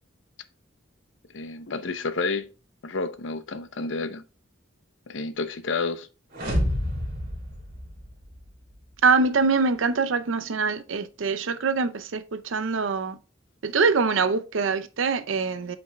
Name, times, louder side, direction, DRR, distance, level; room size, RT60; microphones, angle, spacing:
voice 1, 1.3-2.5 2.8-4.2 5.1-6.1, left 3 dB, 70° left, 0.7 m, -30 dB
sound 1, 6.3-8.4, equal, 50° right, 2.8 m, -29 dB
voice 2, 9.0-13.2 13.6-15.8, right 4 dB, 80° right, 0.6 m, -24 dB
7.9 x 5.3 x 2.2 m
head